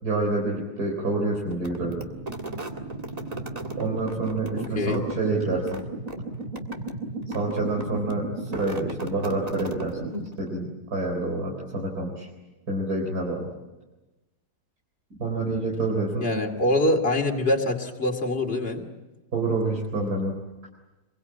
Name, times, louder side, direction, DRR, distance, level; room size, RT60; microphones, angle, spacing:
voice 1, 0.0-2.0 3.7-5.8 7.3-12.3 12.7-13.5 15.2-16.3 19.3-20.4, right 2 dB, 70° right, -1 dB, 4.5 m, -28 dB
sound 1, 1.5-10.5, right 2 dB, 25° right, 2.0 m, -35 dB
voice 2, 4.5-5.0 16.2-18.8, left 1 dB, 35° left, 3 dB, 2.7 m, -24 dB
27.5 x 22.5 x 8.5 m, 1.1 s
omnidirectional pair, 1.7 m